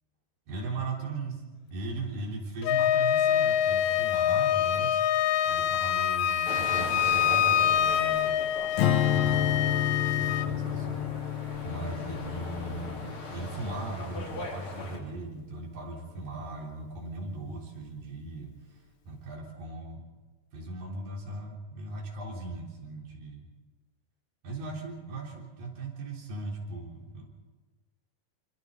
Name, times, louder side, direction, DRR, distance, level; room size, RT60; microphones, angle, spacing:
voice 1, 0.5-5.0 5.5-8.4 9.1-9.8 10.2-18.8 19.1-20.0 20.5-23.5 24.4-27.3, right 2 dB, 90° right, -1 dB, 5.4 m, -38 dB
Wind instrument woodwind instrument, 2.6-10.5, left 10 dB, 75° left, 1.7 m, -26 dB
sound 1, 6.5-15.0, left 2 dB, 40° left, 3.6 m, -41 dB
Strum, 8.8-15.2, left 10 dB, 90° left, 3.3 m, -30 dB
27.0 x 26.5 x 4.0 m, 1.3 s
omnidirectional pair, 3.9 m